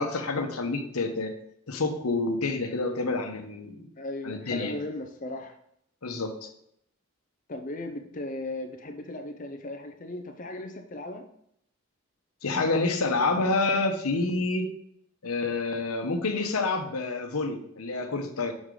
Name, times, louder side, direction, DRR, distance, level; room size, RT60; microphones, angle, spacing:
voice 1, 0.0-1.3 1.7-3.8 4.2-4.7 6.0-6.5 12.4-14.7 15.2-18.5, left 3 dB, 85° left, 5 dB, 1.0 m, -28 dB
voice 2, 4.0-5.6 7.5-11.2, left 2 dB, 35° left, 6 dB, 0.6 m, -37 dB
6.3 x 4.9 x 3.8 m, 0.72 s
head